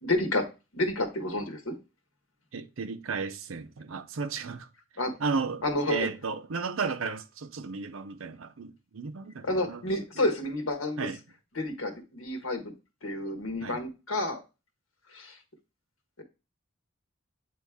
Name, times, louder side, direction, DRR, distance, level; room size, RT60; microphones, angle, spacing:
voice 1, 0.0-1.7 5.0-5.2 5.6-6.1 9.4-11.1 11.6-12.7 13.0-14.4 15.1-15.4 16.2-16.3, left 1 dB, 80° left, 1.4 m, -30 dB
voice 2, 2.5-4.7 5.2-9.8 11.0-11.2 13.6-13.8, right 4 dB, 75° right, 0.6 m, -34 dB
8.6 x 3.1 x 3.5 m
head